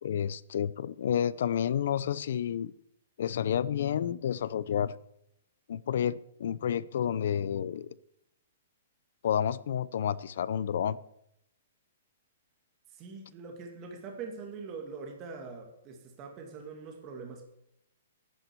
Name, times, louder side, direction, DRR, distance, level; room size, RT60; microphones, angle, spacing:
voice 1, 0.0-2.7 3.2-5.0 5.7-7.9 9.2-11.0, left 9 dB, 65° left, 19 dB, 0.6 m, -30 dB
voice 2, 12.9-17.4, right 4 dB, 25° right, 2 dB, 2.2 m, -43 dB
10.5 x 10.5 x 6.9 m, 0.77 s
hypercardioid pair, 165°, 0 cm